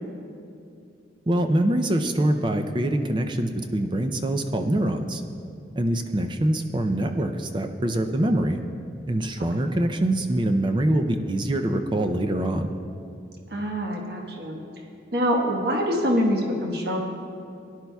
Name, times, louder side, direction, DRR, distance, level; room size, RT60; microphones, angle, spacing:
voice 1, 1.3-5.2 5.8-8.6 9.1-12.7, right 1 dB, 25° right, 6 dB, 0.4 m, -24 dB
voice 2, 9.4-9.8 13.5-14.6 15.1-17.0, equal, 55° right, 0 dB, 1.3 m, -25 dB
17.5 x 11.0 x 2.3 m, 2.5 s
head